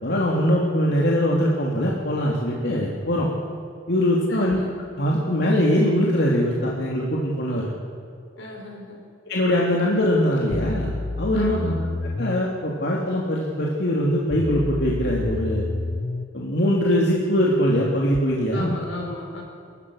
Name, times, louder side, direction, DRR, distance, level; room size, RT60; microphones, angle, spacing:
voice 1, 0.0-3.3 3.9-4.6 5.0-7.7 9.3-11.7 12.2-15.6 16.3-18.7, equal, 55° left, -3 dB, 2.9 m, -22 dB
voice 2, 4.3-4.7 8.4-9.0 11.3-11.8 18.5-19.4, left 2 dB, 80° left, 0 dB, 5.7 m, -35 dB
sound 1, 10.5-12.5 14.3-16.3 18.1-18.2, left 3 dB, 30° left, 0.4 m, -29 dB
28.0 x 15.0 x 6.5 m, 2.4 s
head